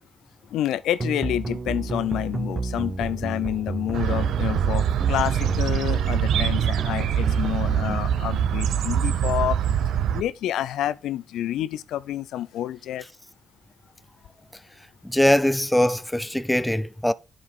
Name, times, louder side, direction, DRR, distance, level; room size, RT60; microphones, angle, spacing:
voice 1, 0.5-9.6 10.1-13.1, left 12 dB, 80° left, 0.3 m, -28 dB
sound 1, 1.0-8.0, right 3 dB, 30° right, 0.7 m, -32 dB
sound 2, 3.9-10.2, right 9 dB, 75° right, 0.6 m, -24 dB
voice 2, 15.0-17.1, left 1 dB, 5° left, 0.4 m, -21 dB
10.5 x 4.8 x 3.6 m
cardioid pair, 90°, 0 cm